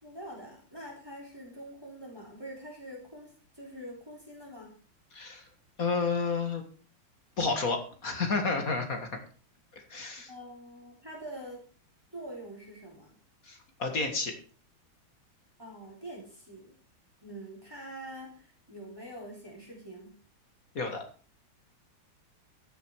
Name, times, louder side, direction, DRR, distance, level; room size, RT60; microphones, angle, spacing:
voice 1, 0.0-4.7 10.3-11.6 12.1-13.1 15.6-16.7 17.2-20.2, right 1 dB, 10° right, -2 dB, 3.7 m, -45 dB
voice 2, 5.1-5.4 5.8-6.6 7.4-9.0 9.7-10.3 13.4-14.3 20.8-21.0, left 4 dB, 45° left, 5 dB, 2.1 m, -30 dB
14.0 x 7.0 x 4.6 m, 0.40 s
omnidirectional pair, 2.3 m